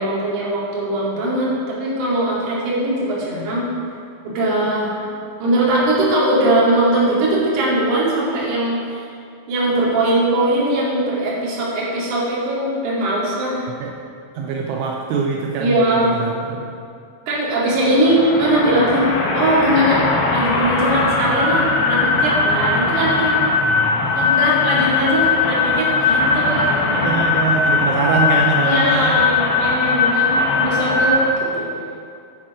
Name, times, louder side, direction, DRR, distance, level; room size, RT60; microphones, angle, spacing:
voice 1, 0.0-3.7 4.2-5.0 5.4-9.1 9.5-13.7 15.6-16.1 17.3-20.1 20.3-23.4 24.1-27.1 27.4-27.5 28.6-31.7, right 1 dB, 45° right, -7 dB, 3.3 m, -20 dB
voice 2, 14.4-16.7 23.6-24.1 27.0-29.1, right 5 dB, 80° right, 0 dB, 3.1 m, -23 dB
sound 1, 17.6-31.3, left 4 dB, 70° left, 2.9 m, -19 dB
9.8 x 8.9 x 4.9 m, 2.4 s
omnidirectional pair, 5.5 m